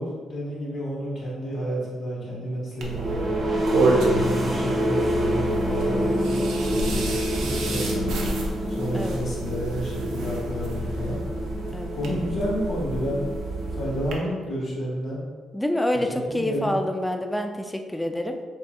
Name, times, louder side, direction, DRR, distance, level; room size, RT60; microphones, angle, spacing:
voice 1, 0.0-3.6 4.1-8.1 8.7-11.2 11.9-13.3 13.7-15.2 16.1-16.8, equal, 60° left, -8 dB, 1.4 m, -31 dB
sound 1, 2.8-14.4, equal, 40° right, 1.0 m, -27 dB
sound 2, 2.8-14.2, right 2 dB, 85° right, 0.6 m, -30 dB
voice 2, 15.5-18.4, left 1 dB, 5° left, 5 dB, 0.4 m, -27 dB
5.4 x 3.2 x 2.3 m, 1.5 s
cardioid pair, 90°, 0 cm